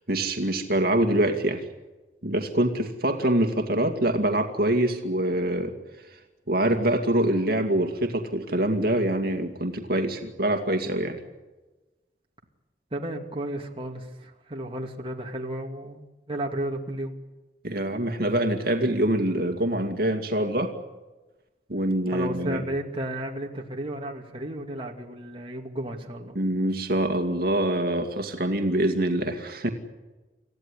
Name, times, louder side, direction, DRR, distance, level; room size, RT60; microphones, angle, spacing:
voice 1, 0.1-1.6 2.2-5.7 6.5-11.2 17.6-20.7 21.7-22.6 26.4-29.7, right 1 dB, 60° right, 5 dB, 2.3 m, -25 dB
voice 2, 12.9-17.1 17.8-17.9 22.1-26.4, right 1 dB, 30° right, 1 dB, 2.6 m, -33 dB
28.0 x 15.0 x 10.0 m, 1.1 s
head